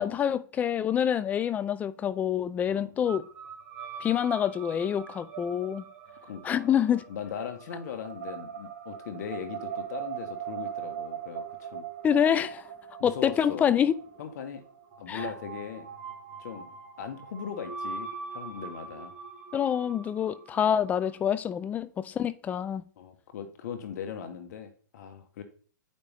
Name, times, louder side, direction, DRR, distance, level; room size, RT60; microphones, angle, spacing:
voice 1, 0.0-3.2 4.0-5.8 6.4-7.0 12.0-12.7 13.0-13.9 15.1-15.3 19.5-22.8, left 9 dB, 15° left, 0.3 m, -26 dB
sound 1, 3.1-21.2, right 7 dB, 45° right, 1.9 m, -41 dB
voice 2, 6.2-6.8 7.1-11.9 13.0-13.8 14.2-14.6 15.0-15.9 16.4-19.1 23.0-25.4, left 7 dB, 55° left, 1.2 m, -39 dB
8.7 x 5.3 x 3.4 m
hypercardioid pair, 135°, 11 cm